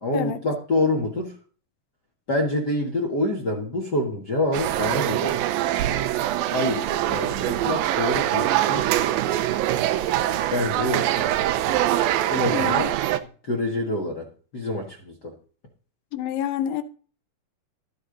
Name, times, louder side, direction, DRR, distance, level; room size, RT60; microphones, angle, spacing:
voice 1, 0.0-1.3 2.3-5.3 6.5-8.9 10.5-11.3 12.3-12.9 13.4-15.3, left 1 dB, 50° left, 1.2 m, -26 dB
sound 1, 4.5-13.2, right 13 dB, 85° right, 2.5 m, -23 dB
voice 2, 12.5-12.8 16.1-16.8, left 10 dB, 80° left, 2.5 m, -27 dB
12.5 x 8.3 x 3.9 m
omnidirectional pair, 4.1 m